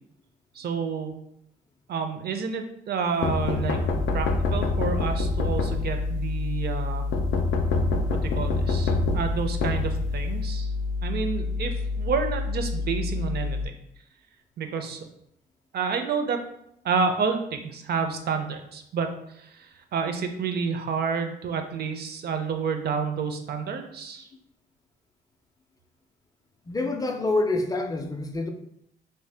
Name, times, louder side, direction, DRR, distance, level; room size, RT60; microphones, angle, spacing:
voice 1, 0.5-1.1 1.9-3.9 4.1-7.1 8.1-10.7 11.0-13.8 14.6-15.0 15.7-16.4 16.8-24.3, right 5 dB, 55° right, 6 dB, 0.4 m, -29 dB
sound 1, 3.2-6.2 7.1-10.4, left 3 dB, 85° left, 0.4 m, -27 dB
sound 2, 3.9-13.7, left 4 dB, 85° right, 1.0 m, -29 dB
voice 2, 26.7-28.5, left 2 dB, 20° left, 5 dB, 0.4 m, -27 dB
2.7 x 2.0 x 3.3 m, 0.76 s
cardioid pair, 90°, 20 cm